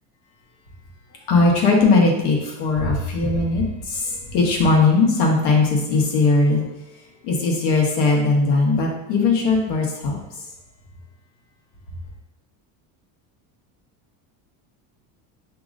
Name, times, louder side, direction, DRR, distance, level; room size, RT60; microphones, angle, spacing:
voice 1, 1.3-6.6 7.2-10.2, left 3 dB, 65° left, -1 dB, 1.2 m, -19 dB
6.2 x 2.9 x 2.5 m, 0.97 s
cardioid pair, 165°, 42 cm